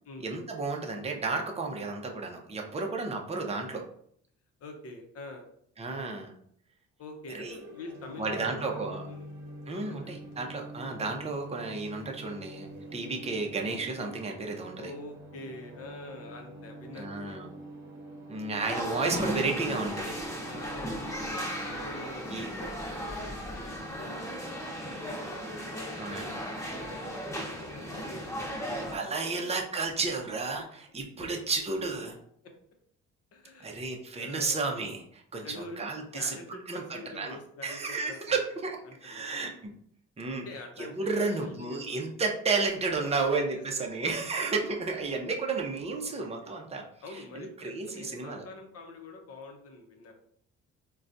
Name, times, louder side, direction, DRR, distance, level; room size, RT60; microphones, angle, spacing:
voice 1, 0.2-3.9 5.8-6.3 7.3-7.6 8.2-9.0 9.7-14.9 16.9-17.5 18.3-20.1 22.3-22.5 25.9-26.3 28.9-30.6 30.9-32.2 33.6-36.3 36.7-37.4 37.6-39.5 40.2-40.5 40.8-46.8 47.3-48.4, right 3 dB, 20° right, 1 dB, 0.6 m, -32 dB
voice 2, 4.6-5.4 7.0-9.3 9.9-10.1 14.7-17.4 20.4-21.1 21.7-24.2 24.5-24.6 25.9-28.9 29.4-29.5 32.4-32.5 33.3-33.8 34.1-34.6 35.4-38.4 38.8-39.5 40.4-42.1 43.0-43.6 45.9-46.5 47.0-50.1, left 2 dB, 50° left, 3 dB, 0.8 m, -46 dB
sound 1, 7.4-22.1, right 1 dB, 40° right, 1.0 m, -46 dB
sound 2, 18.6-29.0, equal, 10° left, 1.1 m, -36 dB
3.8 x 2.3 x 2.5 m, 0.66 s
cardioid pair, 90°, 30 cm